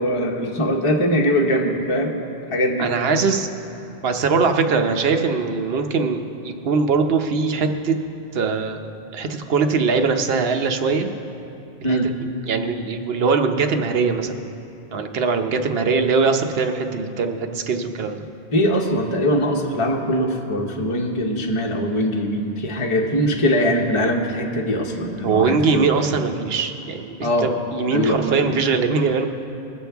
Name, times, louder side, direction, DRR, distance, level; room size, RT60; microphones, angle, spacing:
voice 1, 0.0-2.1 2.5-2.9 11.8-12.1 18.5-25.9 27.2-27.5 27.9-28.3, equal, 30° left, 0 dB, 0.9 m, -21 dB
voice 2, 2.8-3.5 4.0-7.9 8.3-8.9 9.1-11.1 11.8-12.0 12.5-14.4 14.9-18.3 25.2-29.3, right 4 dB, 70° right, 6 dB, 1.0 m, -21 dB
21.0 x 7.3 x 3.5 m, 2.7 s
omnidirectional pair, 1.1 m